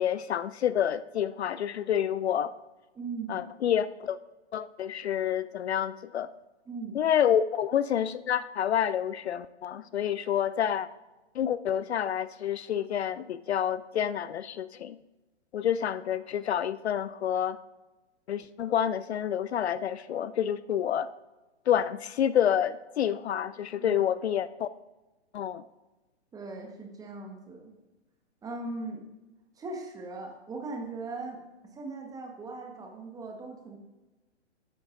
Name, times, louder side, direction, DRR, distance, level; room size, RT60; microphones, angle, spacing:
voice 1, 0.0-2.5 3.3-4.2 4.5-6.3 6.9-10.9 11.3-15.0 15.5-17.6 18.3-21.1 21.7-24.7 25.3-25.6, left 9 dB, 65° left, 16 dB, 0.5 m, -28 dB
voice 2, 2.9-3.5 6.7-7.0 23.8-23.9 26.3-27.7 28.4-29.1 29.6-31.4 31.7-33.8, right 3 dB, 10° right, 2 dB, 1.2 m, -39 dB
12.0 x 9.7 x 2.6 m, 1.1 s
figure-of-eight pair, 125°, 35 cm